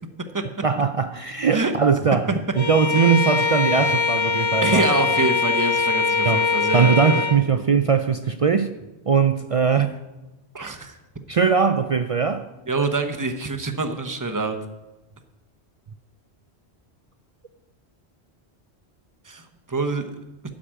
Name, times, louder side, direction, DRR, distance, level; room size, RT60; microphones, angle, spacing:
voice 1, 0.6-2.3 2.6-4.9 5.2-5.3 6.2-6.5 6.7-8.7 9.1-9.9 11.3-12.5, right 6 dB, 50° right, 0.4 m, -20 dB
Bowed string instrument, 2.6-7.4, left 4 dB, 35° left, 0.6 m, -22 dB
voice 2, 4.6-7.6 10.5-11.0 12.7-14.6 19.2-20.1, right 3 dB, 20° right, 0.8 m, -26 dB
12.5 x 5.0 x 8.8 m
omnidirectional pair, 1.1 m